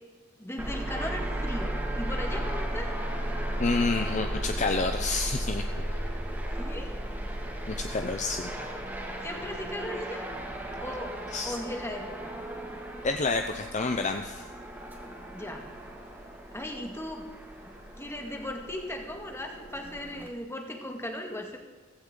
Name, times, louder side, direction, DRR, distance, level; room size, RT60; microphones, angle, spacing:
voice 1, 0.4-2.9 6.6-7.0 9.2-10.3 10.8-11.2 11.4-12.3 15.3-15.7 16.5-17.3 17.6-21.6, left 1 dB, 15° left, 2 dB, 2.0 m, -37 dB
sound 1, 0.6-20.3, right 1 dB, 10° right, 2.2 m, -35 dB
voice 2, 3.6-5.6 7.7-8.5 11.3-11.5 13.0-14.4, left 3 dB, 35° left, 5 dB, 0.7 m, -29 dB
16.5 x 15.5 x 3.9 m, 1.3 s
head